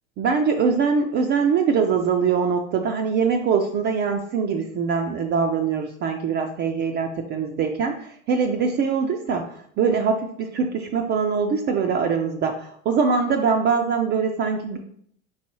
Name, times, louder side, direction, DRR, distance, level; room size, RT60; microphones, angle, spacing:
voice 1, 0.2-14.8, right 5 dB, 30° right, 4 dB, 0.4 m, -23 dB
4.7 x 3.7 x 2.9 m, 0.63 s
hypercardioid pair, 90°, 41 cm